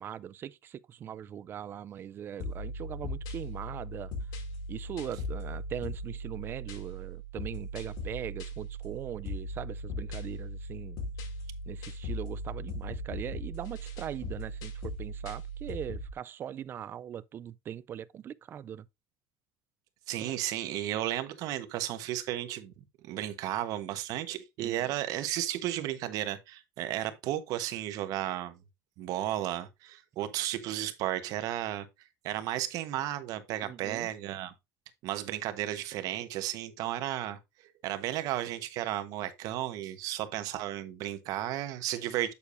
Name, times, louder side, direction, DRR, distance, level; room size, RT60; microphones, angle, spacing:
voice 1, 0.0-4.1 4.7-11.0 11.7-18.9 24.6-24.8 33.6-34.1, right 9 dB, 30° right, 0.4 m, -40 dB
sound 1, 2.4-16.1, equal, 65° left, 2.5 m, -38 dB
voice 2, 20.1-22.7 23.0-28.6 29.0-31.9 32.2-34.5 35.0-37.4 37.8-42.3, right 13 dB, 60° right, 1.1 m, -33 dB
8.4 x 6.9 x 2.6 m
cardioid pair, 150°, 7 cm